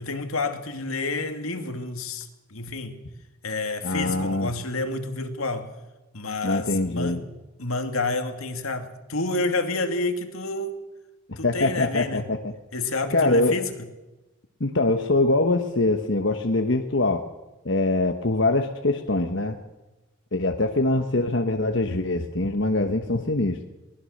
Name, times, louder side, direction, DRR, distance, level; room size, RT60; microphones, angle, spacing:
voice 1, 0.0-3.0 3.4-5.7 6.1-7.3 7.6-10.8 11.4-12.3 12.7-13.9, left 2 dB, 80° left, 2.4 m, -29 dB
voice 2, 3.8-4.5 6.4-7.2 11.4-12.5 13.1-13.6 14.6-17.2 17.6-19.6 20.3-23.6, left 2 dB, 55° left, 1.3 m, -23 dB
23.0 x 19.5 x 6.6 m
head